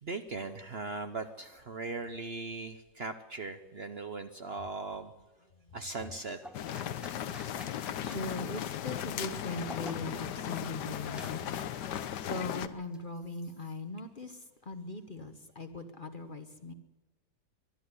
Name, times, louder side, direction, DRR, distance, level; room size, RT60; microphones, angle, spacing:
voice 1, 0.0-5.1 5.7-6.4, right 3 dB, 45° right, 8 dB, 0.9 m, -39 dB
sound 1, 6.0-12.5 12.8-13.0, equal, ahead, 0.9 m, -51 dB
sound 2, 6.5-12.7, left 10 dB, 85° left, 1.4 m, -37 dB
voice 2, 7.6-16.7, left 2 dB, 35° left, 9 dB, 1.1 m, -40 dB
22.5 x 12.0 x 9.7 m, 1.2 s
omnidirectional pair, 1.7 m